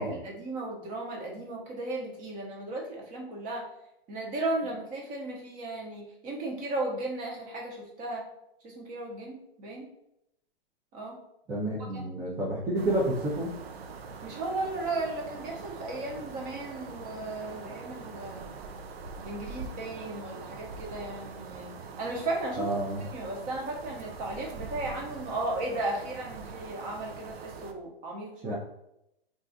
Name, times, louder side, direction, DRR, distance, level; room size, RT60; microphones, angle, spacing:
voice 1, 0.0-3.7 4.1-8.3 8.6-9.9 10.9-11.2 14.2-18.5 19.2-28.6, right 2 dB, 25° right, -1 dB, 0.7 m, -35 dB
voice 2, 11.5-13.5 22.6-23.1 28.4-28.5, right 1 dB, 10° right, -7 dB, 0.4 m, -29 dB
sound 1, 12.8-27.7, right 4 dB, 90° right, 0.5 m, -43 dB
2.5 x 2.3 x 3.8 m, 0.81 s
hypercardioid pair, 130°, 30 cm